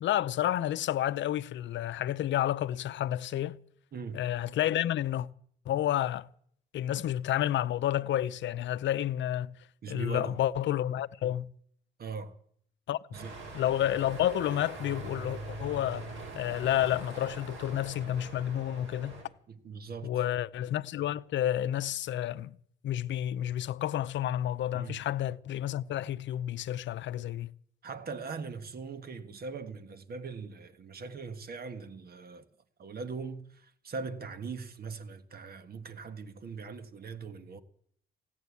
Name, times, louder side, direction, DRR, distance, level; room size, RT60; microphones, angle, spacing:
voice 1, 0.0-3.6 4.1-5.3 5.7-6.3 6.7-9.5 9.9-11.5 12.9-13.0 13.5-16.1 16.3-19.2 20.0-22.5 22.8-27.5, left 12 dB, 70° left, 0.6 m, -30 dB
voice 2, 3.9-4.3 9.8-10.4 12.0-12.4 13.1-13.6 19.5-20.2 24.8-25.1 27.8-32.5 32.8-37.6, right 5 dB, 50° right, 1.5 m, -41 dB
sound 1, 13.1-19.2, right 2 dB, 75° right, 7.4 m, -43 dB
16.5 x 9.3 x 8.3 m
cardioid pair, 90°, 20 cm